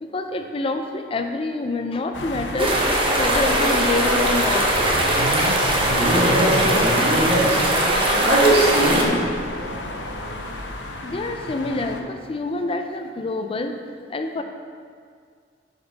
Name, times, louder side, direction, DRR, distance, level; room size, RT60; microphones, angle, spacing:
voice 1, 0.0-2.8 3.2-4.7 9.8-9.9 11.0-13.8 14.1-14.4, left 2 dB, 30° left, 6 dB, 0.4 m, -26 dB
sound 1, 2.1-12.0, left 2 dB, 75° left, 0.8 m, -34 dB
sound 2, 2.6-9.0, right 1 dB, 30° right, 1.1 m, -20 dB
sound 3, 3.9-11.7, right 3 dB, 90° right, 0.5 m, -33 dB
voice 2, 5.8-7.6 8.2-9.2, right 1 dB, 65° right, -5 dB, 2.3 m, -21 dB
11.0 x 5.3 x 4.0 m, 2.1 s
head